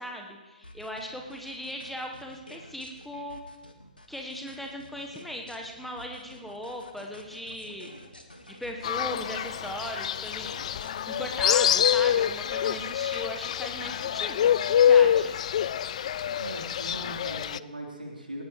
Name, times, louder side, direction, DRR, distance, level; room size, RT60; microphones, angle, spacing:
voice 1, 0.0-3.4 4.1-7.9 8.6-10.5 11.1-15.3, equal, ahead, 2 dB, 1.2 m, -38 dB
sound 1, 0.6-11.3, left 1 dB, 85° left, 1.8 m, -50 dB
Fowl, 8.8-17.6, left 9 dB, 45° left, 0.4 m, -25 dB
voice 2, 16.4-18.4, right 1 dB, 85° right, -1 dB, 3.7 m, -39 dB
19.0 x 18.0 x 3.2 m, 1.2 s
figure-of-eight pair, 125°, 5 cm